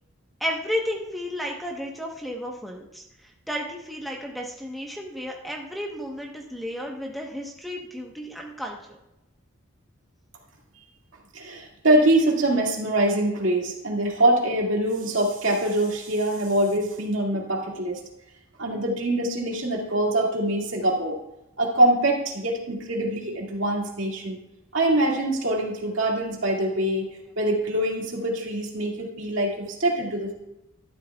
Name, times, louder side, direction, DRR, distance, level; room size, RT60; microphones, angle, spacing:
voice 1, 0.4-9.0, equal, ahead, 0 dB, 1.0 m, -33 dB
voice 2, 11.3-18.0 18.6-21.2 21.6-24.4 24.7-27.1 27.4-30.3, right 1 dB, 70° right, -1 dB, 2.2 m, -24 dB
12.5 x 12.0 x 2.3 m, 0.89 s
head